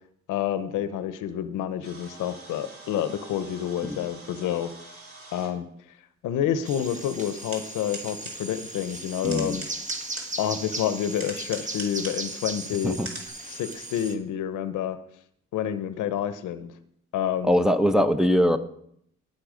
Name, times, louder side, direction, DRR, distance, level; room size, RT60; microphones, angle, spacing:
voice 1, 0.3-4.7 5.3-5.7 6.2-9.6 10.4-13.0 13.4-15.0 15.5-16.7 17.1-17.6, left 10 dB, 85° left, 12 dB, 0.9 m, -28 dB
sound 1, 1.8-5.5 6.5-6.6 7.2-7.6 7.9-8.4 9.1-10.5 11.1-12.3 12.7-12.8 13.0-13.3, right 2 dB, 45° right, 3.0 m, -42 dB
sound 2, 6.6-14.2, right 2 dB, 25° right, 1.3 m, -37 dB
voice 2, 9.2-9.6 12.8-13.1 17.4-18.6, equal, ahead, 6 dB, 0.7 m, -21 dB
17.0 x 5.7 x 5.1 m, 0.70 s
cardioid pair, 90°, 30 cm